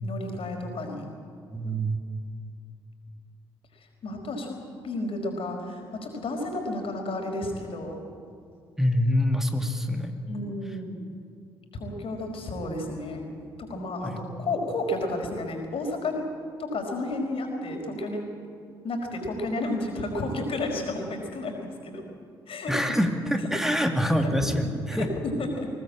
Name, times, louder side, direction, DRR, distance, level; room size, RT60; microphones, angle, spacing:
voice 1, 0.0-1.1 4.0-4.6 4.8-8.0 10.3-11.0 11.7-13.3 13.6-16.3 16.6-18.3 18.8-22.0 22.5-22.8 24.2-24.3 24.9-25.7, left 2 dB, 50° left, 2 dB, 5.0 m, -32 dB
voice 2, 1.5-2.0 8.8-10.2 14.0-14.2 22.7-25.1, equal, 5° right, 5 dB, 2.3 m, -25 dB
21.5 x 18.5 x 8.8 m, 2.4 s
figure-of-eight pair, 45°, 12 cm